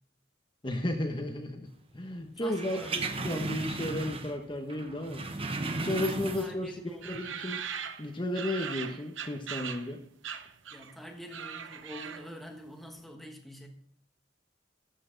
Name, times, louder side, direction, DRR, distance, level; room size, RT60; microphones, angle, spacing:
voice 1, 0.6-1.7 1.9-7.6 8.0-10.0, left 1 dB, 25° left, 3 dB, 1.1 m, -34 dB
voice 2, 2.4-3.2 6.0-7.3 10.7-13.7, equal, ahead, 2 dB, 1.3 m, -46 dB
sound 1, 2.5-4.4 4.7-6.7 7.1-7.2, right 3 dB, 30° right, 0.9 m, -35 dB
sound 2, 7.0-9.9 10.2-11.0 11.2-12.4, right 7 dB, 80° right, 0.8 m, -40 dB
13.0 x 8.4 x 3.9 m, 0.66 s
head